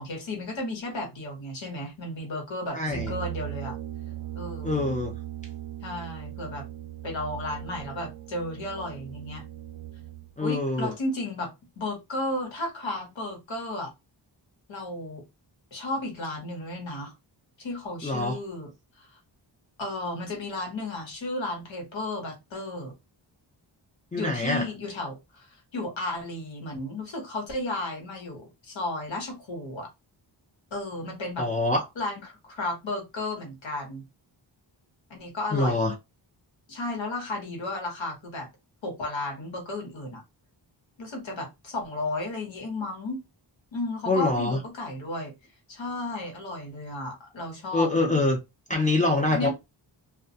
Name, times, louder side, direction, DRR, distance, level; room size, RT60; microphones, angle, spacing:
voice 1, 0.0-3.7 4.3-4.9 5.8-6.6 7.0-9.4 10.4-11.5 11.8-13.9 14.7-15.2 15.7-17.1 17.6-18.7 19.0-19.2 19.8-22.9 24.2-29.9 30.7-31.5 32.0-34.0 35.1-35.8 36.7-38.5 38.8-40.2 41.0-43.2 43.7-45.3 45.7-48.3 49.3-49.5, left 2 dB, 75° left, 1.1 m, -33 dB
voice 2, 2.7-3.1 4.6-5.1 10.4-10.9 18.0-18.4 24.1-24.7 31.4-31.8 35.5-35.9 44.1-44.6 47.7-48.4 48.7-49.5, left 2 dB, 20° left, 0.4 m, -25 dB
Brass instrument, 2.8-10.3, right 14 dB, 75° right, 0.6 m, -38 dB
2.2 x 2.2 x 2.6 m
wide cardioid pair, 120°, 46 cm